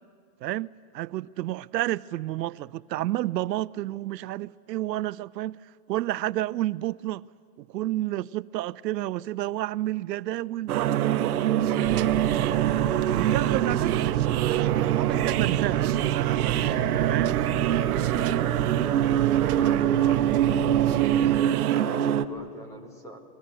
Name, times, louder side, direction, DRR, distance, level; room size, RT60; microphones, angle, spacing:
voice 1, 0.9-5.6 5.9-7.2 7.7-12.1 12.8-16.6 17.0-17.4, right 15 dB, 85° right, 0.6 m, -31 dB
sound 1, 10.7-22.3, right 11 dB, 65° right, 1.1 m, -24 dB
sound 2, 11.8-21.4, right 11 dB, 35° right, 0.6 m, -30 dB
voice 2, 19.6-20.2 21.2-23.2, equal, 5° left, 1.4 m, -42 dB
25.5 x 20.5 x 9.1 m
supercardioid pair, 165°, 49 cm